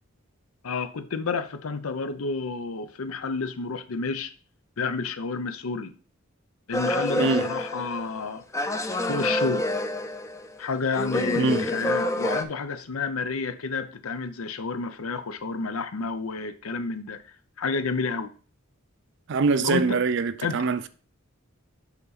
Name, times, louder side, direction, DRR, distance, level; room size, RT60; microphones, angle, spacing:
voice 1, 0.6-4.3 4.8-5.9 6.7-8.7 9.0-9.7 10.6-17.2 17.6-18.3 19.6-20.0 20.4-20.6, left 4 dB, 90° left, 0.6 m, -30 dB
sound 1, 6.7-8.2 8.5-10.6 10.9-12.4, left 1 dB, 15° left, 0.4 m, -28 dB
voice 2, 19.3-20.9, right 4 dB, 60° right, 0.5 m, -24 dB
8.2 x 4.0 x 4.0 m
head